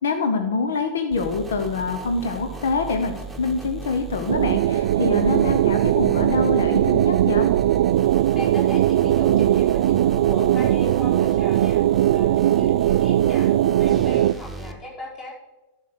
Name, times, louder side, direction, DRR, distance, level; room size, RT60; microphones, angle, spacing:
voice 1, 0.0-7.5, left 4 dB, 65° left, 6 dB, 1.0 m, -25 dB
sound 1, 1.1-14.7, right 3 dB, 5° right, 1.3 m, -37 dB
sound 2, 4.3-14.3, right 12 dB, 55° right, 0.3 m, -19 dB
voice 2, 8.3-13.5 13.8-15.3, left 1 dB, 30° left, -4 dB, 4.9 m, -37 dB
12.0 x 6.5 x 6.2 m, 1.0 s
figure-of-eight pair, 90°, 0 cm